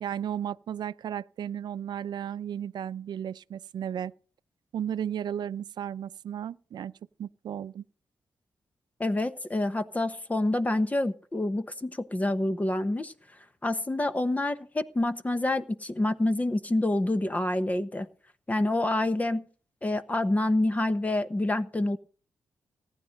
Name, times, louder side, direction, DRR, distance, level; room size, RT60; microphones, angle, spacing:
voice 1, 0.0-4.1 4.7-6.9 7.2-7.8, right 9 dB, 75° right, 0.6 m, -34 dB
voice 2, 9.0-13.1 13.6-18.1 18.5-19.5 19.8-22.0, left 1 dB, 20° left, 1.0 m, -27 dB
18.0 x 9.8 x 5.3 m
cardioid pair, 100°, 7 cm